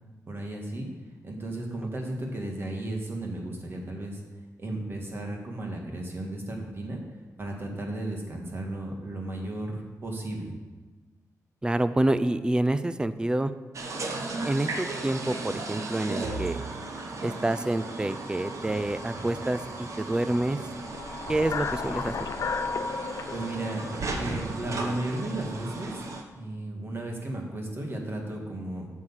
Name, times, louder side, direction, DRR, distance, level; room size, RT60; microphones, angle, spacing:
voice 1, 0.3-0.9 1.2-4.2 4.6-7.0 7.4-10.5 23.3-26.0 26.3-28.9, right 1 dB, 40° right, 1 dB, 2.0 m, -34 dB
voice 2, 11.6-13.5 14.4-16.6 17.2-20.6 21.3-22.3, right 1 dB, 15° right, 12 dB, 0.5 m, -27 dB
sound 1, 13.7-26.2, right 3 dB, 55° right, 1.2 m, -36 dB
sound 2, 20.8-25.1, left 5 dB, 55° left, 0.6 m, -34 dB
8.9 x 6.5 x 7.3 m, 1.3 s
wide cardioid pair, 125°, 6 cm